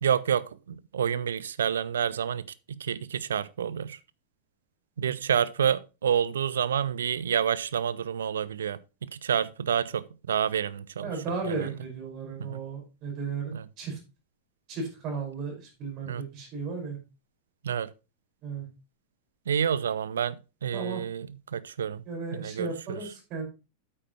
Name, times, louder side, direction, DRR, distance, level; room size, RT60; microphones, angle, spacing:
voice 1, 0.0-4.0 5.0-11.8 12.4-12.6 13.5-13.7 16.0-16.2 17.6-17.9 19.5-22.0 22.3-23.0, right 8 dB, 65° right, 0.5 m, -29 dB
voice 2, 11.0-14.0 14.7-17.0 18.4-18.7 20.7-21.0 22.1-23.5, right 4 dB, 40° right, 5.1 m, -35 dB
8.9 x 8.6 x 3.0 m
figure-of-eight pair, 90°, 0 cm